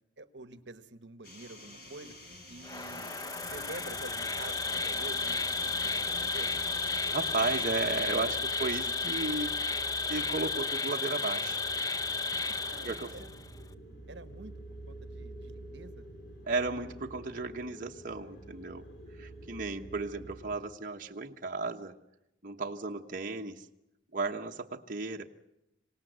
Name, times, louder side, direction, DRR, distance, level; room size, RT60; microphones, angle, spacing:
voice 1, 0.2-2.1 2.5-6.5 12.1-12.2 12.6-13.4 14.1-14.5 14.9-16.1, right 2 dB, 65° right, 11 dB, 1.3 m, -48 dB
sound 1, 1.2-7.7, left 1 dB, 55° left, 5.0 m, -49 dB
Insect, 2.6-13.4, left 4 dB, 20° left, 0.8 m, -33 dB
sound 2, 3.4-20.6, right 1 dB, 70° left, 4.5 m, -48 dB
voice 2, 7.1-9.5 10.1-11.6 12.8-13.1 16.5-18.8 19.1-21.9 22.4-23.7 24.1-25.2, right 3 dB, 45° right, 1 dB, 1.2 m, -34 dB
26.5 x 18.0 x 8.1 m, 0.84 s
head